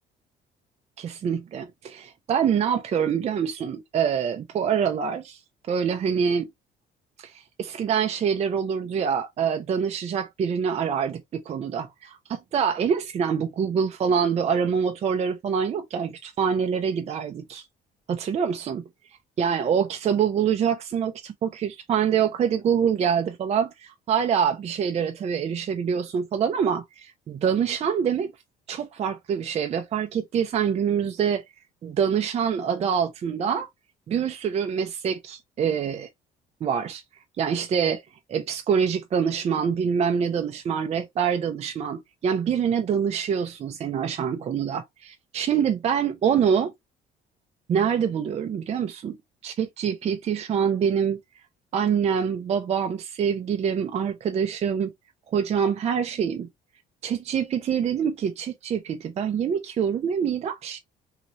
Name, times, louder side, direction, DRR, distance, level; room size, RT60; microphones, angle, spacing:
voice 1, 1.0-5.4 5.7-6.5 7.2-17.6 18.1-18.8 19.4-28.3 28.7-31.4 31.8-33.7 34.1-36.1 36.6-37.0 37.4-38.0 38.3-46.7 47.7-49.2 49.4-51.2 51.7-54.9 55.3-56.5 57.0-60.8, right 7 dB, 40° right, 0.5 m, -25 dB
3.0 x 2.8 x 2.5 m
cardioid pair, 110°, 17 cm